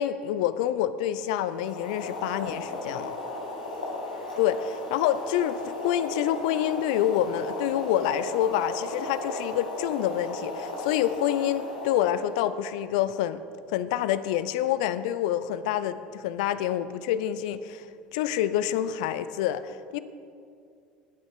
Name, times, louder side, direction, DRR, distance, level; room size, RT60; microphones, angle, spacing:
voice 1, 0.0-3.2 4.4-13.4 13.7-17.9 18.1-20.0, left 11 dB, 70° left, 14 dB, 0.6 m, -27 dB
Boiling, 1.5-12.5, left 2 dB, 90° left, 1.9 m, -36 dB
17.5 x 9.5 x 4.7 m, 2.4 s
hypercardioid pair, 70°, 4 cm